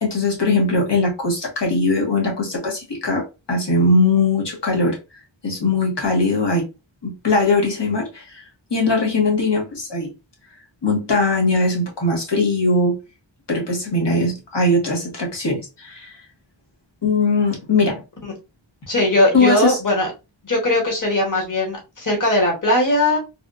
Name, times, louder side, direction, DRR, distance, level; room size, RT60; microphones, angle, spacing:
voice 1, 0.0-5.0 5.4-6.6 7.0-8.4 8.7-10.1 10.8-13.0 13.5-16.1 17.0-18.0 19.3-19.8, left 2 dB, 60° left, 1.3 m, -20 dB
voice 2, 18.9-20.1 20.4-23.2, left 1 dB, 40° left, 1.4 m, -19 dB
3.4 x 2.3 x 2.5 m
wide cardioid pair, 50°, 47 cm